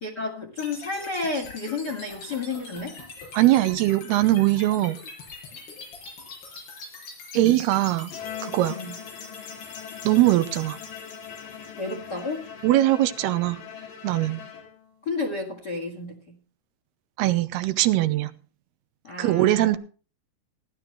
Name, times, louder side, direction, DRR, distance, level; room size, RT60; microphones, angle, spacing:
voice 1, 0.0-3.0 7.3-7.6 8.7-9.0 11.8-12.5 15.0-16.4 19.0-19.8, left 3 dB, 35° left, 1.9 m, -31 dB
sound 1, 0.6-12.6, left 4 dB, 85° left, 7.3 m, -43 dB
voice 2, 3.3-5.0 7.3-8.1 8.4-8.8 10.0-10.8 12.6-13.6 14.0-14.4 17.2-18.3 19.2-19.8, right 15 dB, 85° right, 2.8 m, -21 dB
Bowed string instrument, 8.1-15.1, left 8 dB, 60° left, 4.0 m, -41 dB
17.5 x 11.5 x 3.3 m
omnidirectional pair, 4.6 m